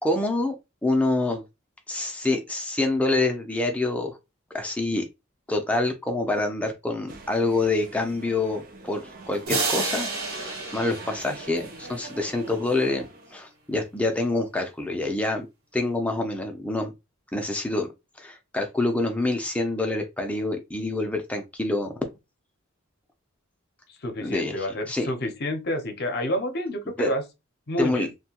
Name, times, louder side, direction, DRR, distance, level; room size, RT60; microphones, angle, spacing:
voice 1, 0.0-0.6 0.8-1.4 1.9-4.2 4.5-5.0 5.5-13.1 13.3-15.5 15.7-16.9 17.3-17.9 18.2-21.9 24.2-25.1 27.0-27.1 27.8-28.1, left 2 dB, 5° left, 0.5 m, -26 dB
sound 1, 7.1-13.5, right 2 dB, 45° right, 0.5 m, -43 dB
sound 2, 9.5-12.1, right 3 dB, 85° right, 1.1 m, -30 dB
voice 2, 23.9-27.2 27.7-28.1, left 1 dB, 50° left, 0.7 m, -29 dB
2.7 x 2.2 x 2.8 m
head